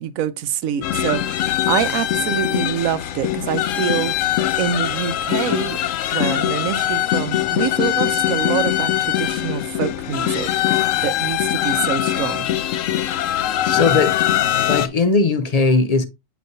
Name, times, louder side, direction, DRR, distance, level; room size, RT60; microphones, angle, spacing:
voice 1, 0.0-4.2 4.6-5.8 6.1-10.5 11.0-12.5, right 10 dB, 80° right, 1.1 m, -25 dB
sound 1, 0.8-14.9, left 12 dB, 75° left, 0.9 m, -22 dB
voice 2, 13.6-14.2 14.6-16.1, left 3 dB, 55° left, 0.4 m, -18 dB
8.2 x 4.9 x 2.6 m
omnidirectional pair, 1.4 m